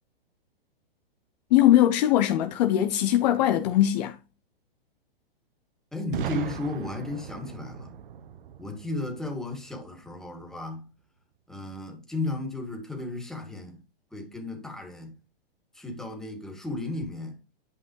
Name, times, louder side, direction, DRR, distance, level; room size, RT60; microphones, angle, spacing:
voice 1, 1.5-4.2, left 12 dB, 45° left, 0.9 m, -21 dB
voice 2, 5.9-8.0 8.6-10.9 11.5-13.8 14.1-15.1 15.7-17.4, left 2 dB, ahead, 2.4 m, -34 dB
Boom, 6.1-10.0, right 8 dB, 60° right, 1.0 m, -38 dB
11.0 x 5.3 x 3.1 m
hypercardioid pair, 125°, 30 cm